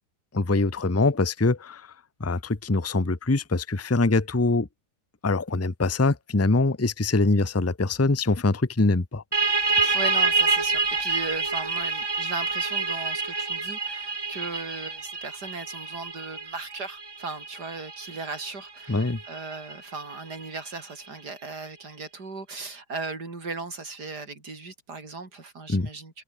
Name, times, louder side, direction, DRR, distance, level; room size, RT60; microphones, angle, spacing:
voice 1, 0.3-1.9 2.2-4.7 5.2-9.2 9.8-9.9 18.9-19.2 25.7-25.9, left 3 dB, 10° left, 0.8 m, -23 dB
sound 1, 9.3-20.7, right 3 dB, 35° right, 0.4 m, -28 dB
voice 2, 9.9-26.2, right 3 dB, 55° right, 4.9 m, -37 dB
omnidirectional pair, 2.1 m